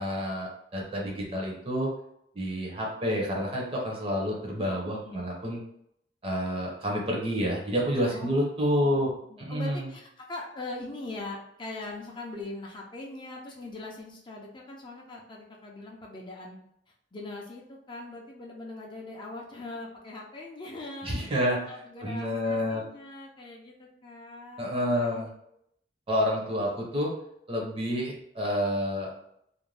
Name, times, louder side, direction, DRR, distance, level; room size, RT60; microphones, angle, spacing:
voice 1, 0.0-1.9 2.4-5.6 6.2-9.1 9.4-9.9 21.0-21.6 22.0-22.8 24.6-25.3 26.1-27.1 27.5-29.1, equal, 30° right, -2 dB, 0.7 m, -29 dB
voice 2, 4.9-5.3 8.1-8.4 8.8-16.6 17.1-25.3, left 2 dB, 25° left, -2 dB, 0.4 m, -41 dB
2.5 x 2.1 x 3.2 m, 0.75 s
head